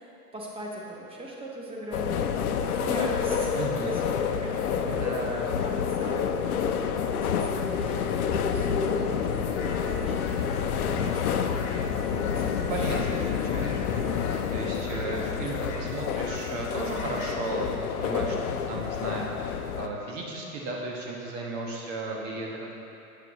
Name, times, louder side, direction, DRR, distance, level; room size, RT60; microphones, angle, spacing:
voice 1, 0.0-6.5 7.1-11.5 12.1-12.7 13.6-13.8 14.9-15.3 18.1-18.3, right 1 dB, 10° right, -3 dB, 1.1 m, -40 dB
sound 1, 1.9-19.9, left 7 dB, 65° left, 0.7 m, -28 dB
voice 2, 3.5-3.9 4.9-5.5 6.1-6.2 6.5-6.6 12.7-18.4 18.7-22.8, right 2 dB, 50° right, -2 dB, 1.3 m, -35 dB
sound 2, 9.3-17.4, left 4 dB, 50° left, 1.1 m, -43 dB
8.9 x 7.9 x 3.0 m, 2.8 s
hypercardioid pair, 115°, 47 cm